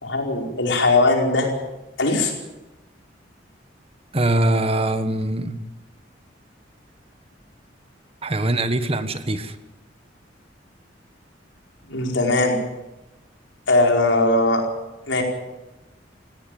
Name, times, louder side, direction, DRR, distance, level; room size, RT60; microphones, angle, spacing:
voice 1, 0.0-1.5 2.0-2.3 11.9-12.6 13.7-14.6 15.1-15.2, left 2 dB, 85° left, 1 dB, 4.9 m, -19 dB
voice 2, 4.1-5.6 8.2-9.6, right 1 dB, 30° right, 11 dB, 1.3 m, -22 dB
18.0 x 17.5 x 9.3 m, 1.0 s
head